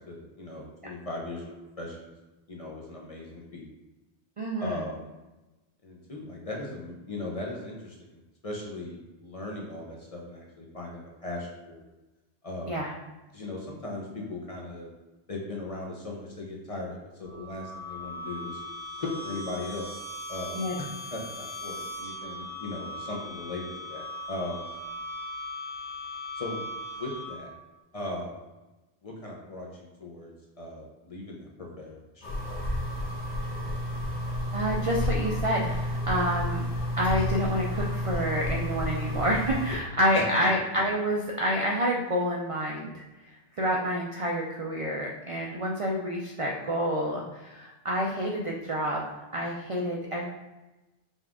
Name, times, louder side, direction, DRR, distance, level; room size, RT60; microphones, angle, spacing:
voice 1, 0.1-2.1 2.5-3.6 4.6-5.1 5.8-11.8 12.4-12.9 13.3-14.9 15.3-18.6 19.0-20.0 20.3-20.7 21.1-21.2 21.6-24.7 26.4-26.6 26.9-27.5 27.9-28.4 29.0-31.5 31.8-32.3 40.1-40.5, left 2 dB, 40° left, -2 dB, 0.6 m, -38 dB
voice 2, 4.4-4.8 12.7-12.9 20.6-20.8 34.5-36.6 37.0-43.0 43.6-49.0 49.3-50.3, equal, 50° right, -2 dB, 0.4 m, -28 dB
sound 1, 17.2-27.6, left 1 dB, 70° right, 1.9 m, -39 dB
sound 2, 32.2-39.8, left 1 dB, 85° left, 1.3 m, -31 dB
5.3 x 2.4 x 3.5 m, 1.1 s
omnidirectional pair, 1.1 m